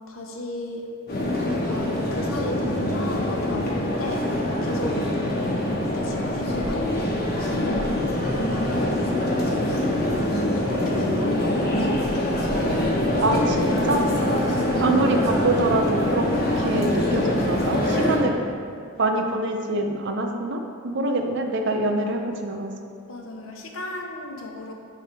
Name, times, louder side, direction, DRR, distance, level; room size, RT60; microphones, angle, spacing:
voice 1, 0.1-0.9 1.4-4.3 4.6-7.1 7.5-9.0 9.7-10.0 10.5-12.1 17.9-18.0 21.6-22.0 23.1-24.7, left 1 dB, 75° left, 1 dB, 0.9 m, -34 dB
sound 1, 1.1-18.2, left 1 dB, 45° left, 1.1 m, -24 dB
voice 2, 13.2-14.0 14.8-16.3 16.6-18.4 19.0-22.7, right 2 dB, 60° right, 4 dB, 0.6 m, -25 dB
9.6 x 3.5 x 4.7 m, 2.4 s
head